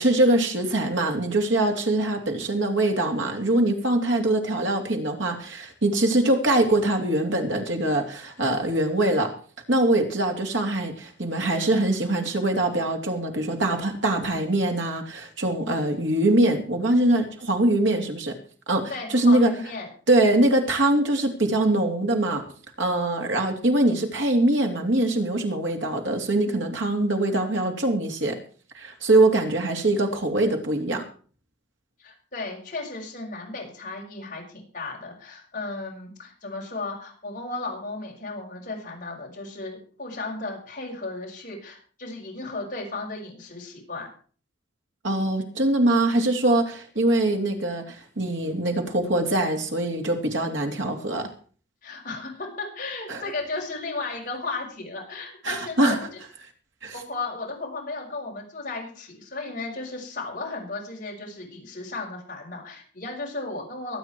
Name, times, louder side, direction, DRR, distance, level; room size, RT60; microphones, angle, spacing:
voice 1, 0.0-9.3 9.7-18.3 18.7-19.5 20.1-22.4 22.8-28.4 28.7-31.0 45.0-51.3 53.1-53.2 55.4-56.0 56.8-56.9, right 1 dB, 75° right, 3 dB, 3.2 m, -23 dB
voice 2, 18.9-19.9 32.0-44.1 51.8-56.2 56.9-64.0, left 3 dB, 40° left, -2 dB, 6.5 m, -35 dB
23.0 x 9.0 x 4.7 m, 0.42 s
head